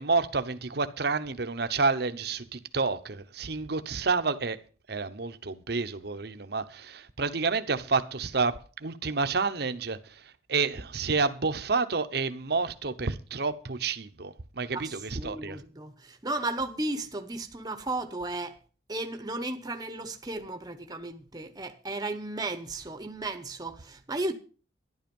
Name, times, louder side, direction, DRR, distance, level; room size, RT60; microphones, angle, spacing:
voice 1, 0.0-4.6 4.9-10.0 10.5-15.6, right 4 dB, 55° right, 0.9 m, -29 dB
voice 2, 14.7-18.6 18.9-24.3, right 2 dB, 20° right, 1.0 m, -34 dB
12.0 x 11.0 x 5.3 m
head